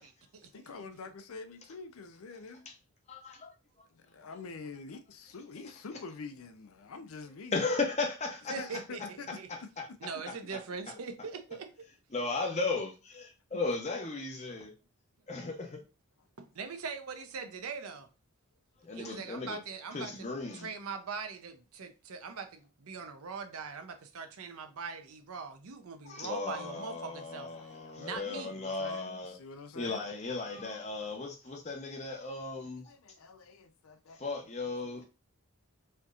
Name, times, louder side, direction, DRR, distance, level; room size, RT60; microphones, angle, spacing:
voice 1, 0.0-0.5 8.5-9.5 10.0-11.7 16.4-18.1 18.9-20.3 20.5-27.5 28.0-28.6, right 5 dB, 80° right, 0.6 m, -41 dB
voice 2, 0.5-2.7 3.9-7.6 8.6-10.0 27.5-28.0 28.5-30.1 32.6-34.3 34.8-35.1, left 4 dB, 75° left, 0.5 m, -47 dB
voice 3, 3.1-3.5 7.5-8.8 9.3-9.9 10.5-10.6 12.1-14.7 15.3-15.8 18.8-19.6 19.9-20.7 26.0-29.3 29.7-32.9 34.2-35.1, left 3 dB, 30° left, 0.8 m, -36 dB
4.3 x 2.8 x 2.4 m
head